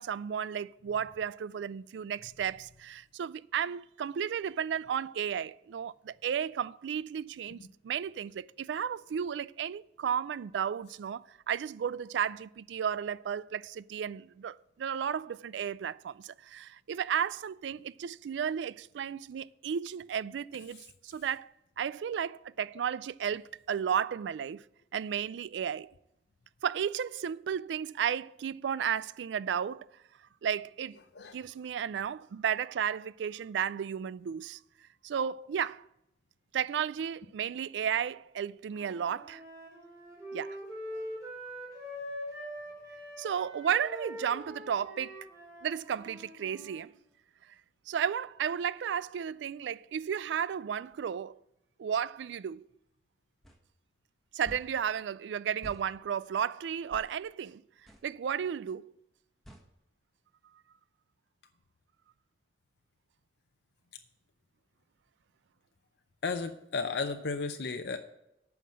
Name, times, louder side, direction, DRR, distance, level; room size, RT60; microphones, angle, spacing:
voice 1, 0.0-21.5 21.8-24.7 24.9-25.9 26.6-29.9 30.4-31.0 31.3-34.6 35.0-35.8 36.5-39.4 40.3-40.6 43.2-45.3 45.6-46.9 47.9-51.4 51.8-52.6 54.3-57.6 58.0-58.9, right 8 dB, 90° right, 0.3 m, -33 dB
voice 2, 31.1-31.5 66.2-68.0, left 4 dB, 65° left, 0.6 m, -34 dB
Wind instrument woodwind instrument, 38.7-46.8, equal, 20° right, 3.6 m, -43 dB
sound 1, 53.4-53.6 54.4-54.7 55.6-55.9 56.9-57.1 57.9-58.1 59.4-59.7, equal, ahead, 1.4 m, -48 dB
9.1 x 5.9 x 7.5 m
head